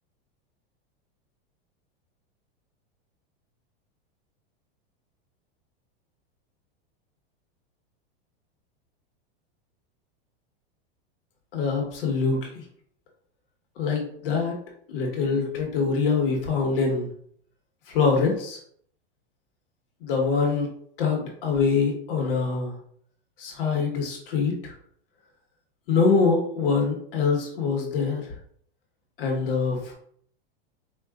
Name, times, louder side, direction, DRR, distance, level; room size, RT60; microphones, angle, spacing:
voice 1, 11.5-12.6 13.8-14.6 14.9-17.1 17.9-18.6 20.0-20.7 21.0-22.8 23.4-24.7 25.9-28.4 29.2-29.9, left 5 dB, 60° left, 0 dB, 1.2 m, -24 dB
4.6 x 2.5 x 2.3 m, 0.62 s
supercardioid pair, 160°, 31 cm